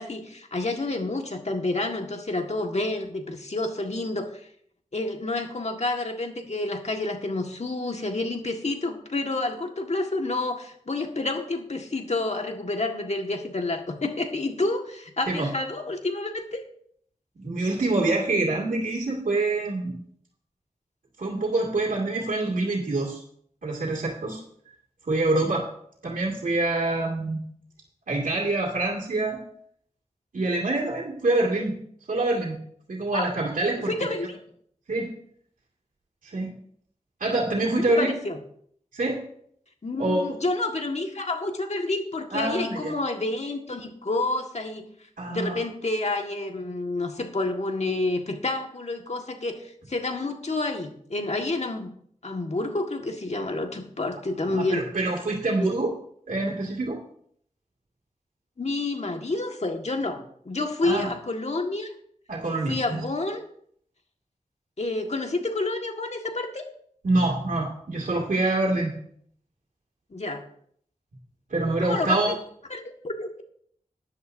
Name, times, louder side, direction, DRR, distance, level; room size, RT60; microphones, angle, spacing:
voice 1, 0.0-4.5 4.9-16.6 33.1-33.3 33.9-34.4 37.8-38.4 39.8-44.9 45.3-51.9 52.2-54.8 55.6-55.7 58.6-61.9 62.7-63.4 64.8-66.7 70.1-70.4 71.8-72.2 72.7-73.4, left 2 dB, 55° left, 3 dB, 1.7 m, -29 dB
voice 2, 17.4-20.0 21.2-23.2 23.6-24.4 25.1-25.7 26.0-27.4 28.1-29.4 30.3-31.8 32.1-32.6 32.9-33.9 34.9-35.1 36.2-36.5 37.2-38.1 38.9-39.2 40.0-40.3 42.3-42.9 45.2-45.6 54.4-55.9 56.3-57.0 60.8-61.1 62.3-63.0 67.0-68.9 71.5-72.3, right 2 dB, 90° right, -4 dB, 2.1 m, -26 dB
15.5 x 10.5 x 2.7 m, 0.65 s
cardioid pair, 45°, 14 cm